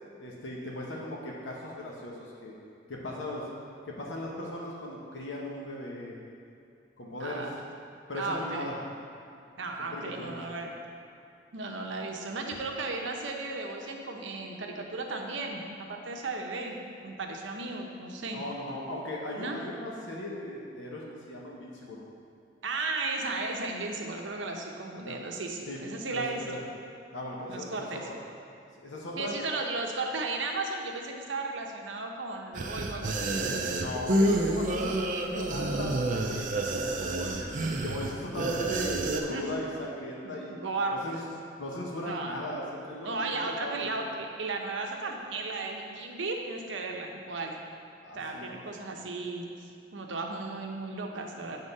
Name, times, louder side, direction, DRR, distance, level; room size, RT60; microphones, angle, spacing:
voice 1, 0.2-2.5 2.9-3.5 3.9-6.2 7.0-7.4 8.1-8.7 9.3-9.4 9.9-10.4 18.3-22.0 25.0-25.2 25.7-25.8 26.1-26.6 27.1-27.9 28.8-29.3 33.7-37.5 37.8-40.6 40.9-41.2 41.6-44.0 48.0-48.6, left 1 dB, 80° left, -3 dB, 1.0 m, -38 dB
voice 2, 7.2-7.6 8.1-8.8 9.6-10.7 11.5-15.6 15.9-16.8 17.0-18.4 19.4-19.6 22.6-26.4 27.5-28.0 29.2-33.3 39.3-39.4 40.2-41.0 42.0-42.3 43.0-47.5 48.1-49.5 49.9-51.6, right 3 dB, 75° right, 2 dB, 0.8 m, -35 dB
sound 1, 32.5-39.2, right 2 dB, 45° right, 0.5 m, -29 dB
8.0 x 3.7 x 5.4 m, 2.6 s
head